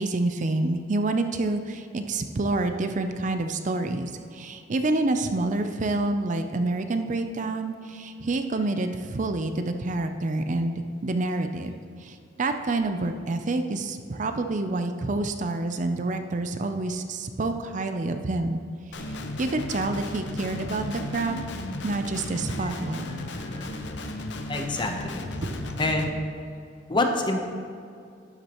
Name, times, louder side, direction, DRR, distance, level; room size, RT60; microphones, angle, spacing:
voice 1, 0.0-11.7 12.0-18.6 19.0-19.1 19.4-21.4 21.8-23.1 25.4-25.5, right 2 dB, 40° right, 7 dB, 0.5 m, -28 dB
Guitar, 18.9-26.1, left 2 dB, 70° left, 0.7 m, -35 dB
voice 2, 23.0-23.7 24.5-25.3 25.8-26.1 26.9-27.5, left 2 dB, 25° left, 4 dB, 0.8 m, -27 dB
11.5 x 8.3 x 3.0 m, 2.4 s
head